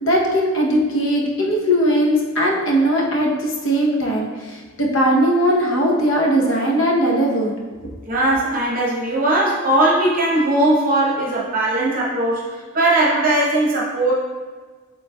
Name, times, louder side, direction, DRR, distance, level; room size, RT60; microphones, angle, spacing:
voice 1, 0.0-7.5, equal, 65° left, -1 dB, 0.8 m, -19 dB
voice 2, 8.1-14.1, right 1 dB, 40° right, -5 dB, 0.8 m, -19 dB
6.9 x 3.2 x 2.2 m, 1.4 s
head